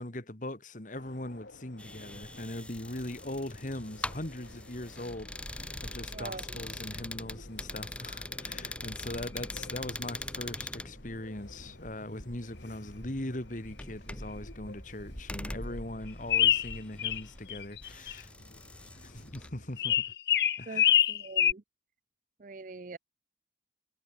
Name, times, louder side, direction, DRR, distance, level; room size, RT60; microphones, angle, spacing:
voice 1, 0.0-18.3 18.9-20.0 20.6-20.9, left 1 dB, 45° left, 2.3 m, -40 dB
sound 1, 0.9-20.2, left 1 dB, 80° left, 3.6 m, -54 dB
sound 2, 1.8-19.5, left 1 dB, 5° left, 1.2 m, -43 dB
voice 2, 6.1-6.6 20.7-21.6 22.4-23.0, right 3 dB, 45° right, 0.6 m, -43 dB
sound 3, 16.3-17.2 17.5-18.1 19.8-21.5, left 10 dB, 60° left, 0.9 m, -25 dB
head